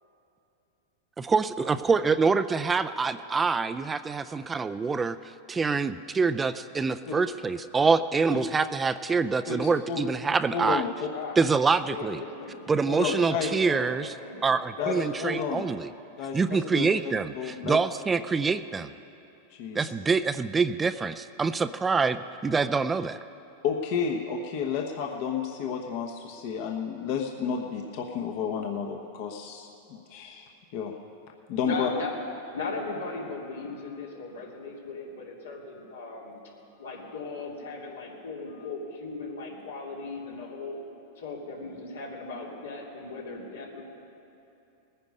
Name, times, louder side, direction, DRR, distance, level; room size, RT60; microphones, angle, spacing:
voice 1, 1.2-5.2 5.5-10.8 11.4-12.2 12.7-14.1 14.4-15.9 16.3-18.9 19.7-23.2, right 4 dB, 15° right, 11 dB, 0.4 m, -25 dB
voice 2, 9.5-10.0 10.5-11.1 12.9-13.5 14.8-14.9 15.2-15.6 16.2-17.8 19.5-19.9 23.6-30.9 31.5-31.9, left 6 dB, 55° left, 2 dB, 1.1 m, -31 dB
voice 3, 11.1-11.5 11.8-15.3 31.6-32.1 32.5-36.3 36.8-40.8 41.2-43.8, left 3 dB, 90° left, -3 dB, 2.9 m, -37 dB
19.5 x 9.8 x 5.4 m, 2.8 s
hypercardioid pair, 115°, 0 cm